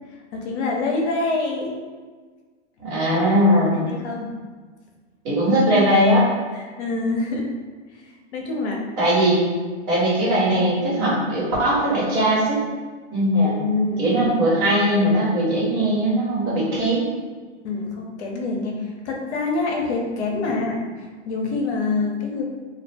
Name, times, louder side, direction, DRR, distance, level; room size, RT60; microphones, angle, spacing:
voice 1, 0.3-1.7 3.0-3.3 3.7-4.3 6.5-7.5 7.9-8.0 8.3-8.8 10.0-10.1 13.4-14.0 17.6-20.8 21.2-22.4, left 3 dB, 65° left, 0 dB, 0.6 m, -26 dB
voice 2, 2.8-3.8 5.2-6.2 9.0-9.4 9.9-12.6 13.1-13.5 14.0-17.1, equal, 45° right, -7 dB, 1.2 m, -19 dB
2.3 x 2.0 x 3.2 m, 1.5 s
hypercardioid pair, 125°, 36 cm